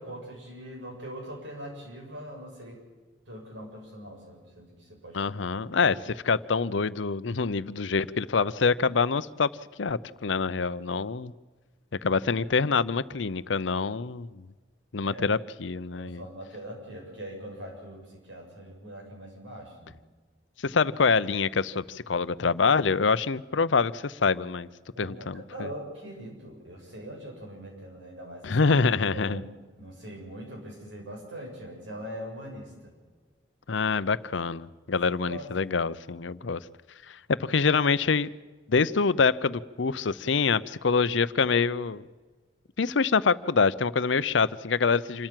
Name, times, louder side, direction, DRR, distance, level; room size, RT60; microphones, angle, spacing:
voice 1, 0.0-2.8 3.3-5.9 15.0-15.4 15.9-20.0 24.9-28.6 28.9-32.9 35.2-35.5, right 1 dB, 85° right, 0 dB, 6.9 m, -42 dB
voice 2, 5.1-9.5 9.8-11.3 12.0-14.4 14.9-16.2 20.6-24.7 25.0-25.7 28.4-29.4 33.7-36.6 37.1-38.3 38.7-42.0 42.8-45.3, left 5 dB, 90° left, 16 dB, 0.6 m, -25 dB
27.0 x 13.5 x 7.5 m, 1.4 s
head